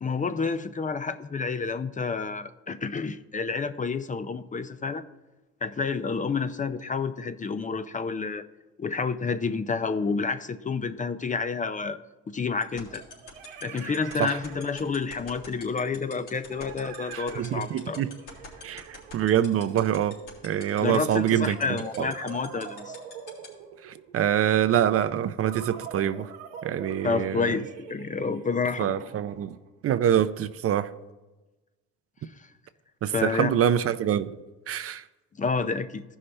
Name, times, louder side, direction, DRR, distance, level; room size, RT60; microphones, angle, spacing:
voice 1, 0.0-5.0 5.6-8.4 8.8-12.0 12.3-13.0 13.6-18.0 20.8-23.0 27.0-28.9 32.4-32.5 33.1-33.6 35.4-36.0, left 4 dB, 25° left, 0.5 m, -29 dB
sound 1, 11.4-11.5 12.9-15.3 16.5-20.0 21.2-24.2 25.4-29.7, right 7 dB, 85° right, 1.0 m, -44 dB
sound 2, 12.6-23.5, left 4 dB, 75° left, 3.0 m, -43 dB
voice 2, 17.1-18.1 18.6-20.2 20.4-21.6 22.0-22.1 23.8-26.3 26.6-27.5 28.8-29.5 29.8-30.9 33.0-34.3 34.7-35.0, right 10 dB, 45° right, 0.5 m, -25 dB
15.0 x 5.5 x 3.3 m
supercardioid pair, 75°, 31 cm